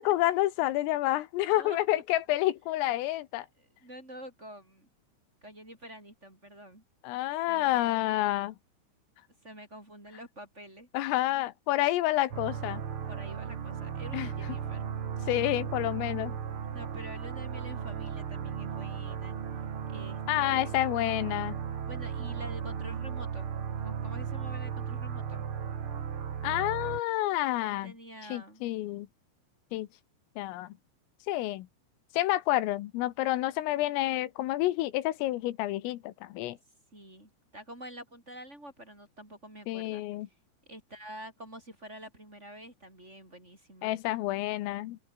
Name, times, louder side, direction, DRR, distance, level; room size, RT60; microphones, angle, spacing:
voice 1, 0.0-3.5 7.0-8.6 10.9-12.8 14.1-14.3 15.3-16.4 20.3-21.6 26.4-27.9 28.3-29.1 29.7-29.9 30.4-30.7 31.3-31.7 32.1-36.6 39.7-40.3 43.8-45.0, left 16 dB, 85° left, 3.9 m, -29 dB
voice 2, 1.6-2.0 3.6-4.9 5.4-6.8 7.5-8.1 9.4-10.9 13.1-14.9 16.7-19.4 19.9-20.7 21.9-23.5 23.8-25.4 27.6-28.6 36.9-40.0 40.7-43.9, right 1 dB, 15° right, 5.9 m, -47 dB
sound 1, 12.3-27.0, right 7 dB, 80° right, 1.2 m, -36 dB
open air
omnidirectional pair, 5.8 m